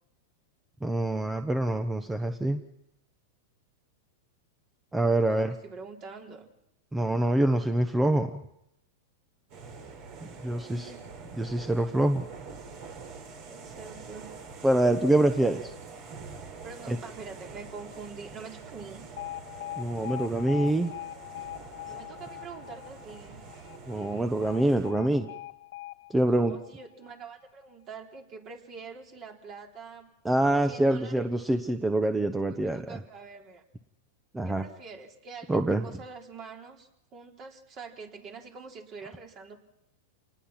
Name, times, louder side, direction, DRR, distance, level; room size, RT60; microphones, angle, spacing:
voice 1, 0.8-2.6 4.9-5.5 6.9-8.4 10.4-10.9 11.4-12.3 14.6-15.7 16.9-17.0 19.8-20.9 23.9-25.3 26.1-26.6 30.2-33.0 34.3-34.6 35.5-35.8, right 1 dB, 10° right, 8 dB, 1.1 m, -25 dB
voice 2, 5.2-6.5 10.4-11.0 13.5-14.3 16.6-19.1 21.8-23.4 26.2-30.1 30.7-31.3 32.5-33.6 34.4-39.6, right 5 dB, 40° right, 2 dB, 3.7 m, -45 dB
sound 1, 9.5-24.9, right 4 dB, 55° right, 4.4 m, -46 dB
Alarm, 19.2-27.2, left 15 dB, 70° left, 1.2 m, -42 dB
27.5 x 19.5 x 5.9 m, 0.83 s
hypercardioid pair, 120°, 0 cm